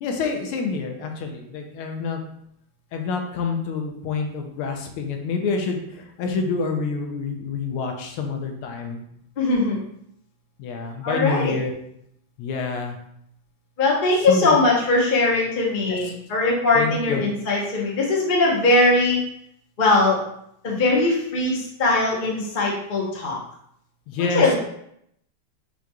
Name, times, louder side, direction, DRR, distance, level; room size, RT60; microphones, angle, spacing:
voice 1, 0.0-2.2 2.9-5.8 6.2-9.0 10.6-11.7 12.4-13.0 14.3-14.6 15.9-16.0 16.7-17.2 24.1-24.4, left 4 dB, 80° left, 3 dB, 1.5 m, -27 dB
voice 2, 9.4-9.8 11.0-11.6 13.8-19.2 19.8-20.2 20.6-23.4 24.2-24.6, left 2 dB, 60° left, -3 dB, 0.5 m, -20 dB
6.1 x 2.9 x 2.3 m, 0.73 s
omnidirectional pair, 2.4 m